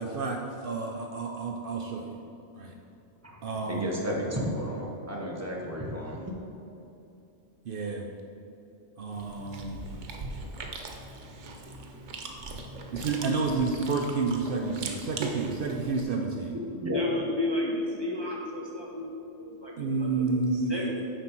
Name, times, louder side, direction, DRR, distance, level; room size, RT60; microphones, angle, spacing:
voice 1, 0.0-2.2 2.6-2.7 3.4-3.9 7.6-8.1 9.0-9.8 12.9-16.5 19.8-21.0, right 4 dB, 60° right, 2 dB, 0.7 m, -30 dB
voice 2, 3.7-6.3 16.8-17.0, equal, 15° right, -2 dB, 0.9 m, -32 dB
Chewing mastication, 9.1-16.0, right 3 dB, 90° right, 1.1 m, -39 dB
voice 3, 16.9-20.2 20.5-21.0, left 1 dB, 30° left, -3 dB, 0.6 m, -33 dB
7.7 x 5.1 x 4.4 m, 2.8 s
omnidirectional pair, 1.2 m